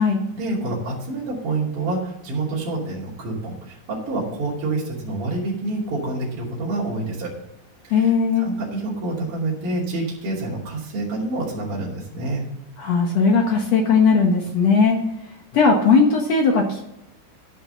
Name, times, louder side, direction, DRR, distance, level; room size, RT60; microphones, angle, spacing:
voice 1, 0.3-7.3 7.8-8.1 8.4-12.4, right 2 dB, 40° right, -5 dB, 3.4 m, -27 dB
voice 2, 7.9-8.5 12.8-15.0 15.5-16.9, left 5 dB, 60° left, 1 dB, 2.0 m, -18 dB
12.5 x 5.6 x 6.9 m, 0.84 s
omnidirectional pair, 4.1 m